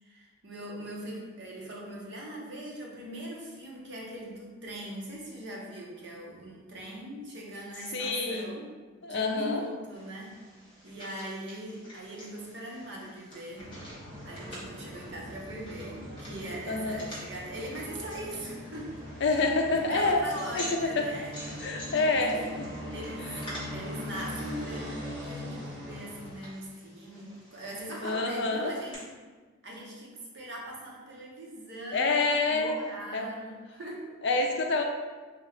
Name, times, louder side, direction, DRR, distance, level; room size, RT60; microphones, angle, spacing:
voice 1, 0.0-8.6 9.0-10.3 10.8-13.7 14.2-19.6 19.9-23.2 23.7-28.9 29.6-32.2 32.5-34.1, right 1 dB, 55° right, -3 dB, 0.8 m, -41 dB
voice 2, 7.9-8.5 9.0-9.6 16.7-17.0 19.2-20.2 20.5-20.6 21.0-21.1 21.6-22.7 23.2-23.3 28.0-28.7 31.9-32.8 33.1-33.3 34.2-34.8, left 3 dB, 55° left, 2 dB, 0.4 m, -27 dB
sound 1, 9.9-28.9, equal, 25° left, 1.1 m, -48 dB
sound 2, 13.6-26.3, left 1 dB, 80° right, 1.2 m, -41 dB
3.6 x 2.8 x 3.2 m, 1.4 s
head